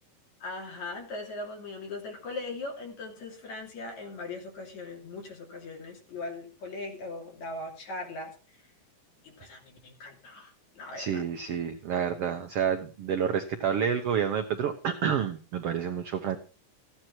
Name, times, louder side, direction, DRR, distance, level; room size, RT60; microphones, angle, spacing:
voice 1, 0.4-8.3 9.2-11.2, left 2 dB, 55° left, 1 dB, 4.0 m, -39 dB
voice 2, 11.0-16.4, right 8 dB, 70° right, 6 dB, 1.4 m, -29 dB
15.0 x 9.6 x 4.5 m, 0.35 s
omnidirectional pair, 3.9 m